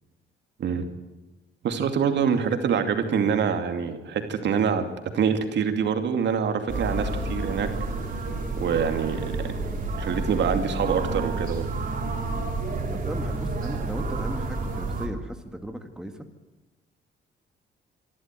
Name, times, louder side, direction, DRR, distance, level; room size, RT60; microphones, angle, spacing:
voice 1, 1.6-7.7 8.6-9.4 10.0-11.7, right 7 dB, 75° right, 6 dB, 2.5 m, -25 dB
sound 1, 6.7-15.1, right 3 dB, 45° right, 3.6 m, -30 dB
voice 2, 12.9-16.3, equal, 5° right, 5 dB, 2.0 m, -36 dB
25.5 x 12.5 x 9.2 m, 1.1 s
cardioid pair, 125°, 19 cm